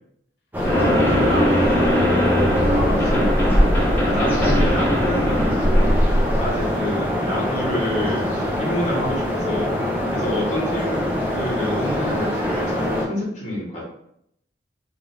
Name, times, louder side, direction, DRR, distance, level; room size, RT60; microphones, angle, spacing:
sound 1, 0.5-13.0, equal, 10° right, 0.6 m, -23 dB
voice 1, 0.7-2.9 4.0-5.2, left 2 dB, 60° left, -3 dB, 0.6 m, -31 dB
sound 2, 0.7-6.7, equal, 10° left, 1.4 m, -21 dB
voice 2, 2.7-3.7 4.0-5.9 6.4-9.8 10.1-13.8, equal, 40° left, -4 dB, 1.4 m, -28 dB
3.8 x 2.4 x 3.4 m, 0.74 s
head